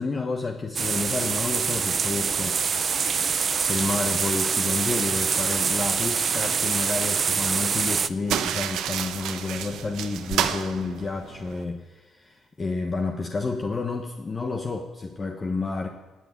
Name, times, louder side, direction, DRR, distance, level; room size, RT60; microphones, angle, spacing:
voice 1, 0.0-2.6 3.6-15.9, left 3 dB, 30° left, 4 dB, 1.3 m, -30 dB
sound 1, 0.8-8.1, right 6 dB, 45° right, 0.7 m, -25 dB
sound 2, 8.3-11.6, right 9 dB, 85° right, 1.0 m, -30 dB
18.5 x 7.3 x 9.3 m, 1.1 s
cardioid pair, 90°, 0 cm